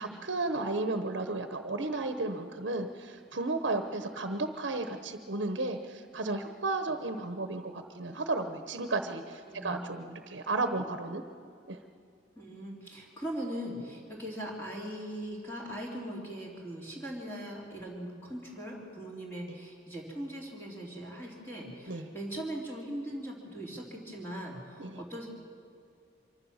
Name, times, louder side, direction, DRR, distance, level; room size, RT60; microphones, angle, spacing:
voice 1, 0.0-11.2 11.7-11.8 19.4-19.5 21.9-22.1 24.8-25.0, right 2 dB, 70° right, 7 dB, 1.0 m, -33 dB
voice 2, 9.5-9.9 12.4-25.3, equal, 10° left, -3 dB, 2.9 m, -40 dB
24.5 x 14.5 x 7.3 m, 2.4 s
head